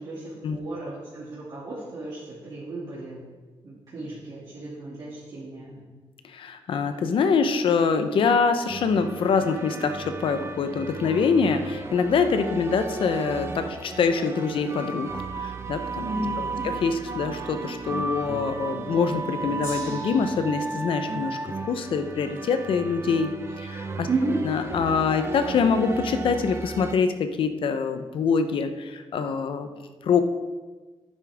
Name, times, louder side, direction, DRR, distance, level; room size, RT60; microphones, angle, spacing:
voice 1, 0.0-3.2 3.6-5.8 16.0-16.7 24.1-24.4, right 2 dB, 50° right, -8 dB, 2.5 m, -33 dB
voice 2, 6.2-16.1 16.6-21.4 21.6-24.1 24.4-29.7 30.0-30.2, left 5 dB, 65° left, 8 dB, 0.8 m, -25 dB
sound 1, 8.7-27.0, right 3 dB, 25° right, 0.7 m, -34 dB
Gong, 19.6-26.0 26.8-26.9, left 2 dB, 30° left, 2.2 m, -49 dB
11.0 x 9.8 x 3.5 m, 1.3 s
wide cardioid pair, 145°, 9 cm